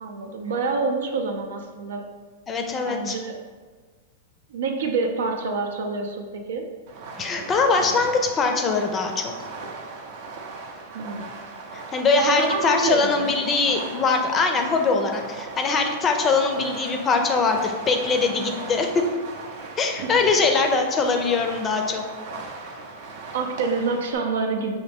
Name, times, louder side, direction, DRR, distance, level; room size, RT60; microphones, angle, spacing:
voice 1, 0.0-2.0 2.8-3.4 4.5-6.7 10.9-11.2 12.1-13.3 20.0-20.1 23.3-24.8, right 4 dB, 85° right, 3 dB, 0.6 m, -26 dB
voice 2, 2.5-3.2 7.2-9.5 11.9-19.0 19.8-22.0, left 4 dB, 20° left, 4 dB, 0.5 m, -22 dB
Fireworks, 6.9-24.1, right 3 dB, 55° right, 0.6 m, -38 dB
5.9 x 2.6 x 3.5 m, 1.5 s
supercardioid pair, 150°, 0 cm